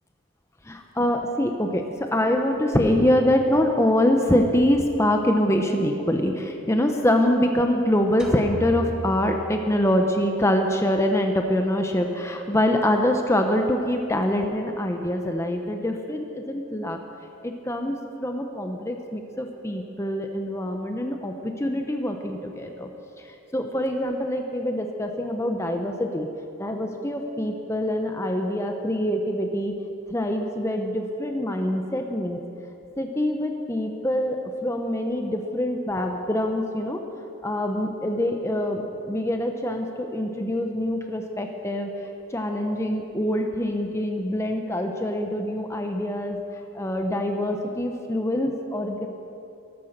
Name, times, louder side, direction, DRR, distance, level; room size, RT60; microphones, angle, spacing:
voice 1, 0.7-17.0 17.4-22.9 23.5-26.3 26.6-29.7 30.1-32.4 33.0-37.0 37.4-41.9 42.3-46.4 46.7-49.1, left 1 dB, 15° left, 3 dB, 0.8 m, -24 dB
sound 1, 8.2-10.0, equal, 5° right, 1.4 m, -35 dB
13.5 x 13.5 x 6.7 m, 2.8 s
head